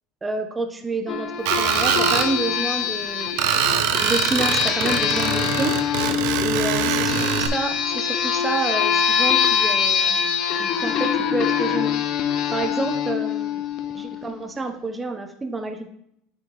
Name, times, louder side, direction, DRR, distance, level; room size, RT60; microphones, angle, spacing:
voice 1, 0.2-3.4 4.0-5.7 6.4-10.2 10.6-12.0 12.5-13.6 13.9-15.9, right 3 dB, 15° right, 6 dB, 0.6 m, -29 dB
sound 1, 1.1-14.3, left 7 dB, 50° left, 0.6 m, -24 dB
Screech, 1.5-2.3 3.4-7.5, right 9 dB, 70° right, 0.6 m, -23 dB
9.5 x 3.4 x 3.0 m, 0.75 s
supercardioid pair, 105°, 0 cm